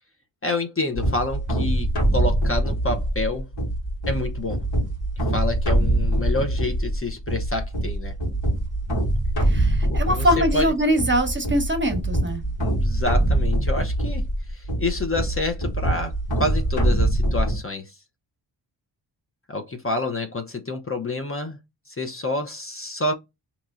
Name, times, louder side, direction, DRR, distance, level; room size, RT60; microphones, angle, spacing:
voice 1, 0.4-1.9 2.1-3.5 4.1-4.6 5.3-8.1 9.9-11.0 12.6-16.1 16.4-17.9 19.5-21.6 21.9-23.1, left 2 dB, 30° left, 0.7 m, -28 dB
sound 1, 0.9-17.6, right 1 dB, 80° left, 1.8 m, -24 dB
voice 2, 9.4-12.5, equal, 25° right, 1.0 m, -23 dB
4.1 x 3.0 x 2.4 m
cardioid pair, 50°, 44 cm